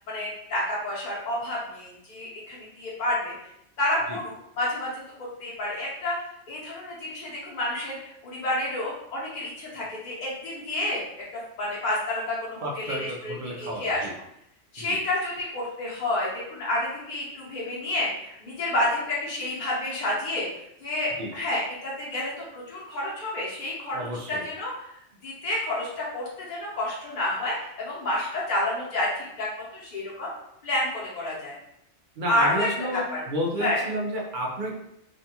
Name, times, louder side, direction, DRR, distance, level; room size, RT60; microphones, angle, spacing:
voice 1, 0.1-3.3 3.8-4.9 5.2-6.1 6.5-11.0 11.6-14.1 14.7-20.5 20.8-24.7 25.2-29.5 29.7-30.3 30.6-31.5 32.3-33.2 33.6-33.8, left 1 dB, 45° left, -6 dB, 0.8 m, -29 dB
voice 2, 12.6-14.1 14.8-15.0 21.2-21.3 23.9-24.4 32.2-34.8, right 1 dB, 60° right, -1 dB, 0.5 m, -31 dB
2.5 x 2.3 x 2.7 m, 0.75 s
omnidirectional pair, 1.2 m